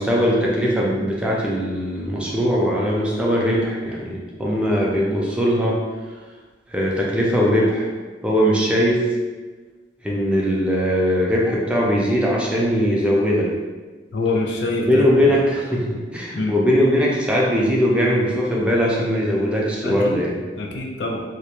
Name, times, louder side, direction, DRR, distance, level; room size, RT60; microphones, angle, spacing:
voice 1, 0.0-5.8 6.7-7.9 8.2-9.0 10.0-13.5 14.9-20.4, equal, 5° right, -4 dB, 0.3 m, -20 dB
voice 2, 14.1-15.1 16.4-16.5 19.8-20.2 20.6-21.2, left 2 dB, 75° left, 0 dB, 0.4 m, -25 dB
2.2 x 2.1 x 2.9 m, 1.3 s
head